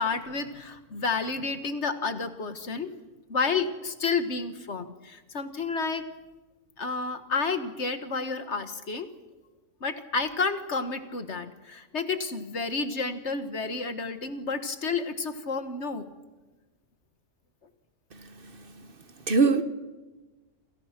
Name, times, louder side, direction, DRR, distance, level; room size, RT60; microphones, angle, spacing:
voice 1, 0.0-3.0 3.3-6.0 6.8-9.1 9.8-16.1, left 4 dB, 65° left, 1.9 m, -30 dB
voice 2, 18.1-18.6 19.3-19.6, right 4 dB, 50° right, 1.5 m, -24 dB
28.0 x 27.5 x 6.0 m
omnidirectional pair, 1.3 m